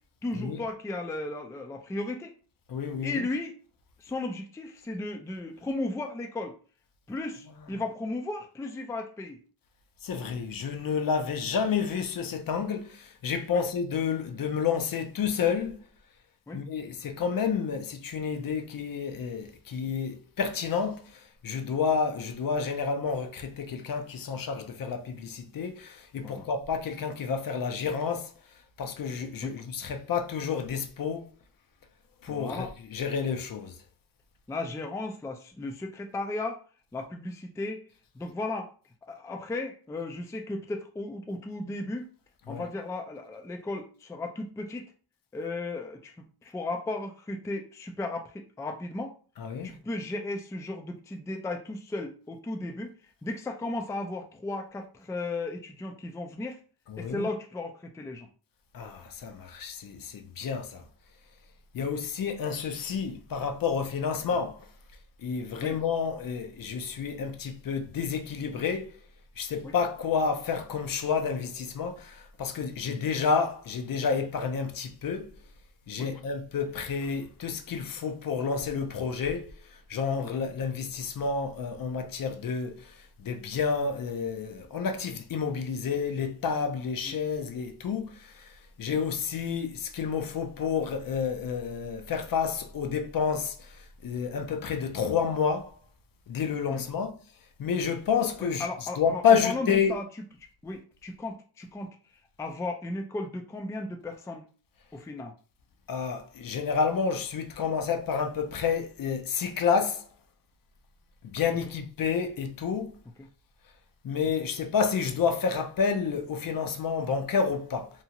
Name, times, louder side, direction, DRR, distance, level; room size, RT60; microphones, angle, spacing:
voice 1, 0.2-2.3 3.0-3.5 4.0-6.6 7.1-9.4 13.5-13.6 16.5-16.6 26.2-26.5 29.4-29.5 32.3-32.7 34.5-36.6 36.9-37.8 38.1-38.7 39.1-42.1 42.5-44.8 45.3-49.1 49.6-52.9 53.2-56.6 57.0-58.3 61.8-62.0 65.6-65.8 69.6-69.7 72.9-73.1 76.0-76.1 80.2-80.5 87.0-87.2 88.9-89.0 96.7-96.9 98.4-100.0 100.6-102.0 102.4-104.4 104.9-105.3 113.2-113.3, left 2 dB, 10° left, 0.3 m, -35 dB
voice 2, 2.7-3.3 10.0-15.8 16.5-28.3 28.8-31.2 32.2-33.7 42.5-42.6 49.4-49.7 56.9-57.3 58.7-60.8 61.7-64.7 65.2-68.9 69.4-75.3 75.9-79.5 79.9-82.9 83.2-88.5 88.8-95.7 96.3-97.1 97.6-98.7 99.0-99.9 105.9-110.1 111.2-112.9 114.0-117.9, left 6 dB, 55° left, 0.6 m, -29 dB
2.7 x 2.3 x 2.8 m
wide cardioid pair, 100°, 40 cm